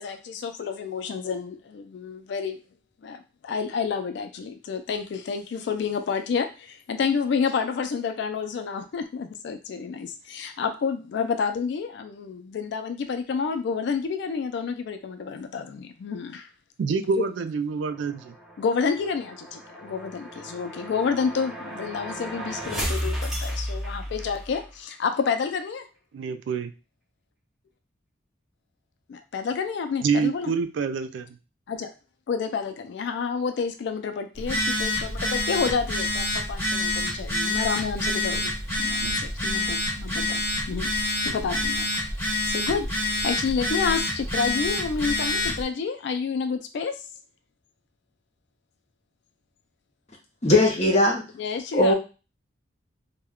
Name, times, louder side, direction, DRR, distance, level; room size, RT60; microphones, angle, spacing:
voice 1, 0.0-2.6 3.0-16.5 16.9-17.2 18.6-25.9 29.1-30.5 31.7-31.9 32.3-41.9 42.5-47.0 51.4-51.9, left 5 dB, 65° left, 8 dB, 0.3 m, -29 dB
voice 2, 16.8-18.3 26.1-26.7 30.0-31.3 39.0-39.2, right 5 dB, 70° right, 10 dB, 0.3 m, -27 dB
sound 1, 17.9-24.6, equal, ahead, 0.9 m, -34 dB
Telephone, 34.4-45.6, left 1 dB, 15° left, 1.2 m, -27 dB
voice 3, 50.4-51.2 51.7-51.9, left 2 dB, 35° left, 0 dB, 0.8 m, -19 dB
2.2 x 2.1 x 3.5 m, 0.31 s
head